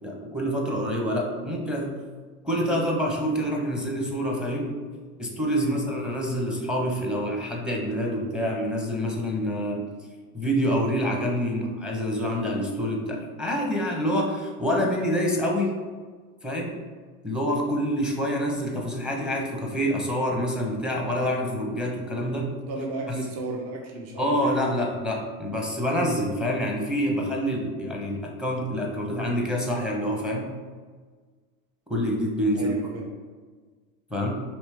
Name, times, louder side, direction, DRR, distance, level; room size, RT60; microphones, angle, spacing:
voice 1, 0.0-1.9 2.4-4.7 5.2-9.9 10.3-15.8 16.4-16.7 17.2-22.5 23.1-23.2 24.2-30.5 31.9-32.8 34.1-34.4, equal, ahead, -1 dB, 0.8 m, -27 dB
voice 2, 22.7-24.6 32.5-33.0, right 2 dB, 40° right, 0 dB, 0.8 m, -34 dB
5.1 x 3.0 x 3.3 m, 1.5 s
supercardioid pair, 110°, 40 cm